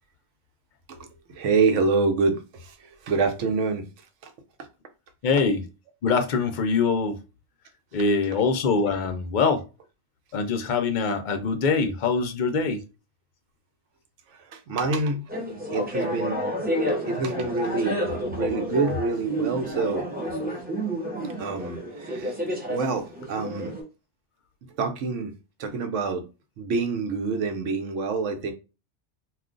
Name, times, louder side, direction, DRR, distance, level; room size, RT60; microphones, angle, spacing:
voice 1, 0.9-3.9 4.2-4.3 5.3-5.4 14.4-15.2 15.7-16.4 17.0-18.0 18.4-20.1 21.4-22.4 22.7-23.7 24.8-25.3 25.6-26.2 26.6-28.5, right 4 dB, 85° right, 1.0 m, -26 dB
voice 2, 5.2-5.6 6.0-7.2 7.9-9.6 10.3-12.8, left 4 dB, 55° left, 0.6 m, -23 dB
sound 1, 15.3-23.8, equal, 10° right, 0.7 m, -30 dB
2.4 x 2.3 x 3.7 m
omnidirectional pair, 1.2 m